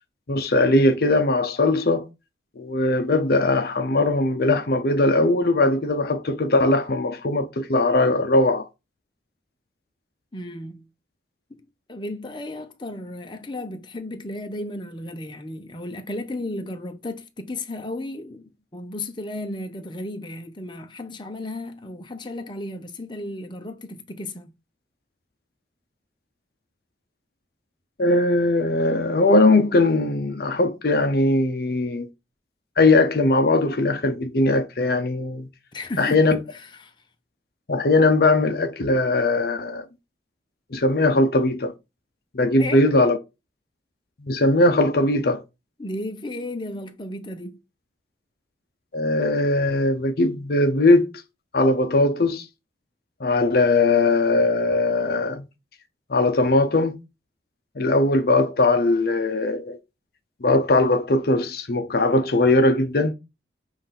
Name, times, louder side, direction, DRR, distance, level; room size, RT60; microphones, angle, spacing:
voice 1, 0.3-2.1 2.6-8.7 28.0-32.1 32.8-35.5 36.0-36.4 37.7-39.8 40.7-41.7 42.3-43.2 44.2-45.4 48.9-51.1 51.5-52.5 53.2-55.4 56.1-57.0 57.8-59.8 60.4-63.1, left 2 dB, 60° left, 0.7 m, -20 dB
voice 2, 10.3-10.9 11.5-11.6 11.9-24.5 35.7-36.9 42.6-43.0 45.8-47.6, left 1 dB, 25° left, 0.8 m, -34 dB
7.6 x 2.6 x 5.8 m
head